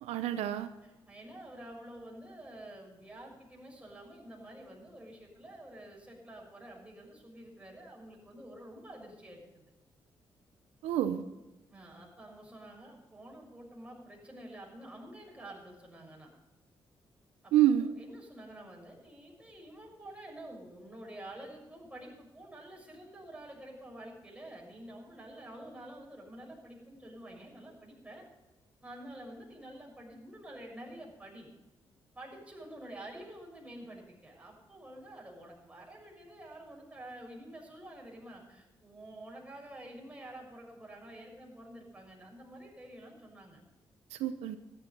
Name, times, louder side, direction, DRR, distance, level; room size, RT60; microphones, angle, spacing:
voice 1, 0.0-0.7 10.8-11.2 17.5-17.9 44.1-44.6, right 11 dB, 90° right, 11 dB, 0.6 m, -28 dB
voice 2, 0.8-9.6 11.7-16.3 17.4-17.5 18.0-28.3 28.8-31.5 32.1-43.6, right 1 dB, 10° right, -2 dB, 6.5 m, -49 dB
13.5 x 11.5 x 5.3 m, 1.0 s
supercardioid pair, 60°, 10 cm